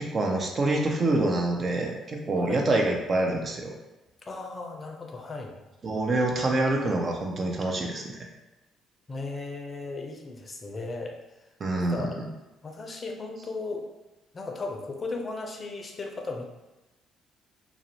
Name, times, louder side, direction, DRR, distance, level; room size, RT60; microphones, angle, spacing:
voice 1, 0.0-3.7 5.8-8.2 11.6-12.3, right 2 dB, 45° right, 1 dB, 0.5 m, -26 dB
voice 2, 2.3-2.7 4.3-5.6 9.1-11.5 11.8-12.2 12.6-13.9 14.3-16.5, left 3 dB, 35° left, 2 dB, 0.5 m, -36 dB
2.5 x 2.0 x 2.8 m, 1.0 s
hypercardioid pair, 55°, 0 cm